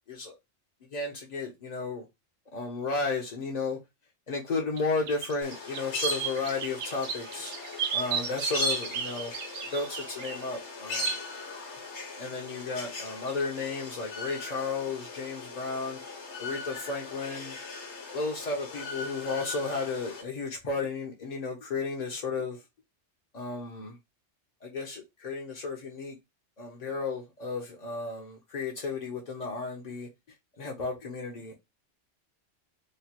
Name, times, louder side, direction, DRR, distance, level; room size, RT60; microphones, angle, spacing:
voice 1, 0.9-2.0 2.5-3.8 4.3-7.5 7.9-9.3 9.7-11.1 12.2-16.0 16.4-17.6 18.1-22.6 23.3-24.0 24.6-26.2 26.6-30.1 30.6-31.5, left 4 dB, 45° left, 0.6 m, -33 dB
sound 1, 4.8-4.9 5.1-10.4 13.3-13.4, right 7 dB, 70° right, 0.9 m, -34 dB
sound 2, 5.4-20.2, left 2 dB, 65° left, 1.2 m, -39 dB
3.1 x 2.2 x 2.8 m
omnidirectional pair, 1.3 m